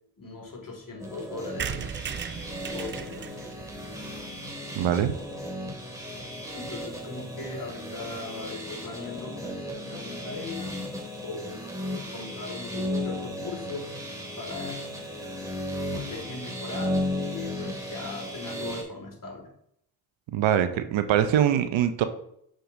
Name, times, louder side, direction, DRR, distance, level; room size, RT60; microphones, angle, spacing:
voice 1, 0.2-1.9 2.7-3.4 6.5-10.8 11.2-13.9 14.4-14.8 15.9-19.5, left 3 dB, 40° left, 1 dB, 2.2 m, -39 dB
sound 1, 1.0-18.8, left 1 dB, 5° right, 2.4 m, -35 dB
sound 2, 1.6-5.3 5.7-5.8 6.0-6.1 6.3-6.4 6.6-6.9, right 8 dB, 25° right, 0.4 m, -38 dB
voice 2, 4.8-5.1 20.3-22.0, right 10 dB, 65° right, 10 dB, 0.7 m, -23 dB
6.5 x 6.3 x 2.7 m, 0.71 s
hypercardioid pair, 45°, 49 cm